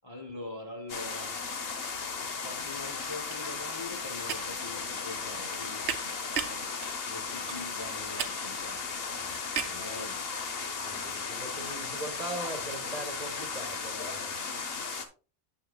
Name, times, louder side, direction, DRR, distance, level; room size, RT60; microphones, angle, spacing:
voice 1, 0.0-1.4 2.4-5.9 7.1-8.8 9.6-10.3, left 2 dB, 25° left, 1.0 m, -43 dB
sound 1, 0.9-15.1, left 5 dB, 60° left, 1.2 m, -36 dB
sound 2, 2.1-2.4 2.7-9.9, right 8 dB, 80° right, 1.0 m, -39 dB
voice 2, 9.7-10.1 10.8-14.3, right 2 dB, 35° right, 1.4 m, -41 dB
8.8 x 8.0 x 2.3 m
omnidirectional pair, 1.1 m